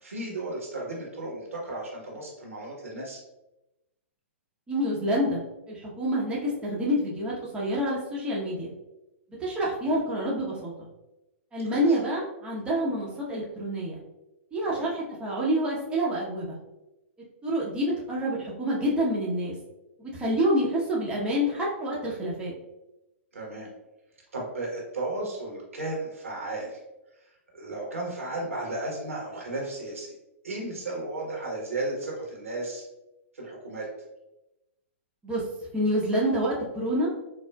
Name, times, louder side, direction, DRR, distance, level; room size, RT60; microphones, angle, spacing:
voice 1, 0.0-3.2 11.7-12.0 14.6-14.9 23.3-23.7 24.3-26.8 27.5-30.1 30.4-32.8 33.3-33.9, right 2 dB, 85° right, -2 dB, 1.1 m, -34 dB
voice 2, 4.7-5.4 5.7-8.7 9.4-10.9 11.5-14.0 14.5-16.6 17.4-19.5 20.0-22.5 35.2-35.4 35.7-37.1, equal, 15° right, -5 dB, 0.8 m, -27 dB
4.3 x 2.1 x 2.2 m, 0.95 s
hypercardioid pair, 115°, 7 cm